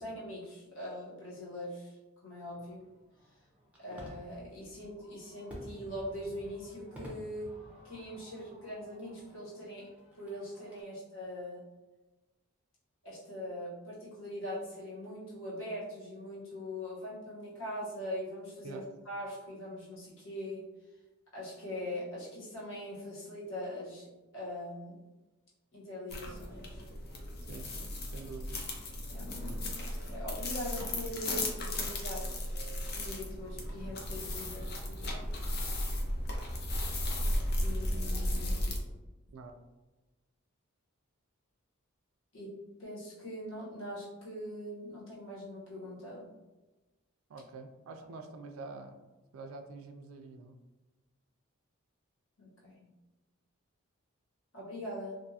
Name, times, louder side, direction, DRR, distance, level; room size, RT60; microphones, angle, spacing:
voice 1, 0.0-2.0 2.2-2.8 3.8-7.5 7.8-9.9 10.1-11.6 13.0-20.7 21.3-25.0 25.7-26.8 29.1-29.3 30.1-32.5 32.9-34.7 37.6-38.7 42.3-42.5 42.8-46.3 52.4-52.9 54.5-55.2, left 1 dB, 65° left, -7 dB, 1.1 m, -42 dB
Fireworks, 2.5-10.8, equal, 5° right, 0.5 m, -52 dB
sound 1, 26.1-38.8, left 1 dB, 50° left, 0.5 m, -35 dB
voice 2, 27.5-28.7 39.3-39.5 47.3-49.0 49.3-50.6, right 3 dB, 75° right, 6 dB, 0.4 m, -46 dB
2.6 x 2.3 x 2.7 m, 1.1 s
head